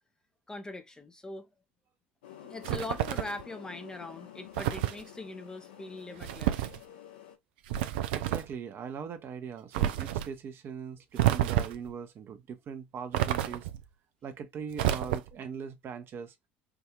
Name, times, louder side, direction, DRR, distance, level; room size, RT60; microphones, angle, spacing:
voice 1, 0.5-1.5 2.4-6.7, left 2 dB, 10° left, 0.7 m, -41 dB
sound 1, 2.2-7.4, left 11 dB, 65° left, 1.2 m, -50 dB
sound 2, 2.6-3.4 4.6-5.0 6.2-6.8 7.7-8.5 9.7-10.3 11.2-11.9 13.1-13.8 14.7-15.5, right 13 dB, 65° right, 0.5 m, -29 dB
voice 2, 8.1-13.7 14.2-16.3, right 7 dB, 40° right, 0.9 m, -41 dB
4.8 x 2.7 x 2.4 m
figure-of-eight pair, 65°, 6 cm